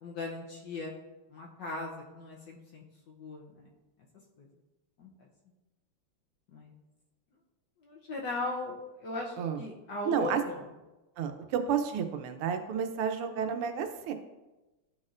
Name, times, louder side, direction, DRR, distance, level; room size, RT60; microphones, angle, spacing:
voice 1, 0.0-0.9 1.3-3.7 4.4-4.5 5.0-5.1 6.5-6.7 7.8-10.6, left 2 dB, 65° left, -1 dB, 1.2 m, -38 dB
voice 2, 10.0-10.4 11.2-14.1, right 7 dB, 85° right, 7 dB, 1.6 m, -31 dB
11.0 x 4.2 x 2.5 m, 1.1 s
omnidirectional pair, 2.4 m